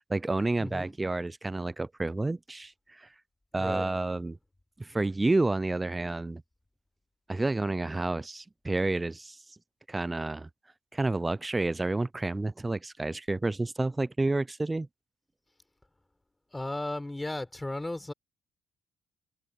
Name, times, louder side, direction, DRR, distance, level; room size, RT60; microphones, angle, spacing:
voice 1, 0.0-2.7 3.0-3.1 3.5-4.4 4.8-6.4 7.3-9.4 9.9-10.5 10.9-14.9, right 2 dB, 20° right, 0.5 m, -30 dB
voice 2, 0.6-0.9 3.5-3.9 16.5-18.1, left 2 dB, 15° left, 4.1 m, -35 dB
supercardioid pair, 70°, 0 cm